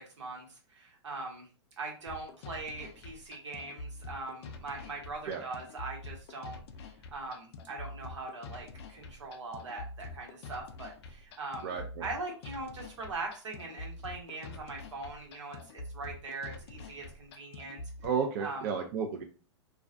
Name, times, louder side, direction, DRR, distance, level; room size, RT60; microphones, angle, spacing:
voice 1, 0.0-1.5 1.8-6.6 7.1-11.7 12.0-17.8 18.4-18.6, right 3 dB, 85° right, 0 dB, 1.1 m, -41 dB
sound 1, 2.1-18.1, left 2 dB, 60° left, 0.4 m, -46 dB
voice 2, 11.6-12.0 18.0-19.2, right 6 dB, 50° right, 3 dB, 0.5 m, -32 dB
2.3 x 2.2 x 2.4 m, 0.36 s
hypercardioid pair, 130°, 15 cm